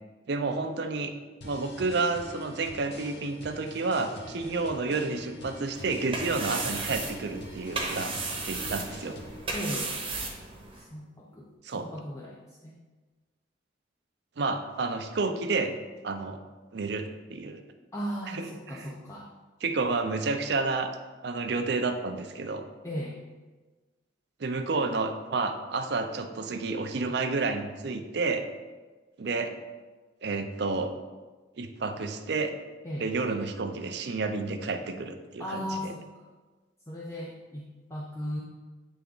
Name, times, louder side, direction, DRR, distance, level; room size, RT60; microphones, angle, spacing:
voice 1, 0.3-1.1 1.4-8.1 8.5-9.2 11.6-11.9 14.4-15.7 16.0-16.4 16.7-17.6 18.3-18.9 19.6-21.0 21.2-22.7 24.4-28.4 29.2-29.5 30.2-30.9 31.6-32.5 33.0-35.9, right 3 dB, 60° right, 6 dB, 0.5 m, -30 dB
sound 1, 1.4-9.4, left 1 dB, 60° left, 0.7 m, -44 dB
sound 2, 5.7-10.9, right 3 dB, 30° right, 0.9 m, -35 dB
voice 2, 9.5-9.9 10.7-12.8 17.9-19.3 22.8-23.2 32.8-33.1 35.4-36.3 36.9-38.4, equal, 15° left, -4 dB, 0.5 m, -37 dB
8.1 x 3.4 x 3.8 m, 1.3 s
head